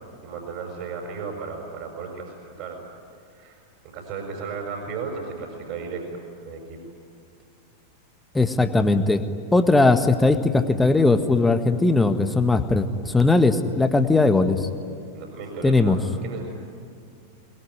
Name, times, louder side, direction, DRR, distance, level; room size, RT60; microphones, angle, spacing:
voice 1, 0.2-2.8 3.3-3.6 3.9-6.8 14.0-14.1 15.1-16.4, right 5 dB, 45° right, 0 dB, 6.2 m, -35 dB
voice 2, 8.3-9.2 9.5-14.7 15.6-16.0, left 3 dB, 10° left, 8 dB, 1.6 m, -19 dB
23.5 x 21.5 x 9.6 m, 2.4 s
figure-of-eight pair, 90°, 0 cm